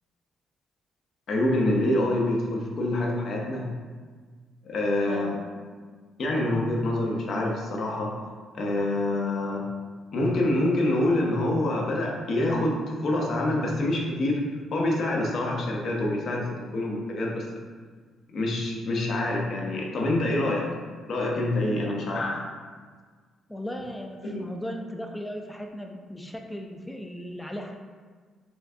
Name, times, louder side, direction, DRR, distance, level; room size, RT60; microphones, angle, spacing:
voice 1, 1.3-3.7 4.6-5.4 6.2-8.1 8.5-9.6 10.1-14.4 14.7-17.4 18.3-20.7 21.1-22.4 24.2-24.4, left 1 dB, 60° left, -1 dB, 0.7 m, -26 dB
voice 2, 23.5-27.8, equal, 10° left, 3 dB, 0.4 m, -37 dB
4.4 x 2.4 x 2.7 m, 1.5 s
cardioid pair, 90°, 0 cm